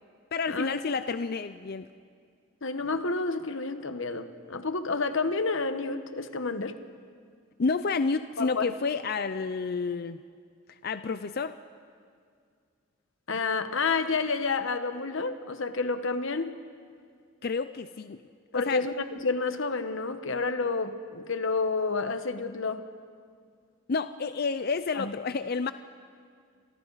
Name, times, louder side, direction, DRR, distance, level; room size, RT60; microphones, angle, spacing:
voice 1, 0.3-1.9 7.6-10.2 10.8-11.6 17.4-18.2 18.5-18.9 23.9-25.7, left 4 dB, 50° left, 11 dB, 0.5 m, -30 dB
voice 2, 2.6-6.8 8.4-8.7 13.3-16.5 18.5-22.9 24.9-25.1, left 4 dB, 65° left, 9 dB, 1.1 m, -30 dB
29.5 x 27.0 x 4.1 m, 2.2 s
head